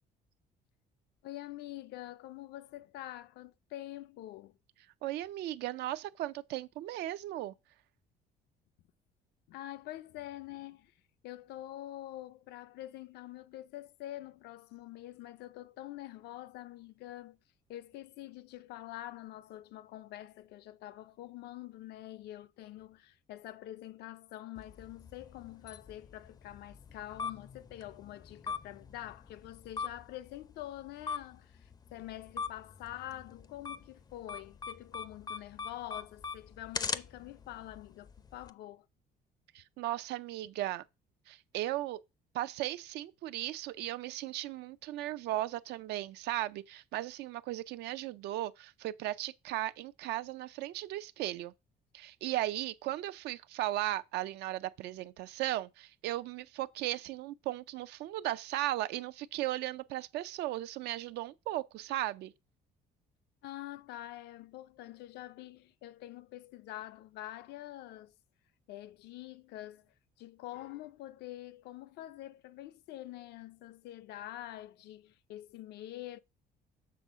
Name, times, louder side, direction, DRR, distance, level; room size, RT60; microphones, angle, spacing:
voice 1, 1.2-4.6 9.5-10.9 11.2-17.4 17.7-38.9 63.4-68.1 68.7-76.2, left 14 dB, 75° left, 0.5 m, -46 dB
voice 2, 5.0-7.5 39.5-40.8 41.3-42.0 42.3-51.5 51.9-62.3, right 15 dB, 80° right, 0.5 m, -36 dB
sound 1, 24.6-38.5, left 5 dB, 25° left, 0.4 m, -43 dB
7.0 x 3.7 x 6.1 m
cardioid pair, 110°, 17 cm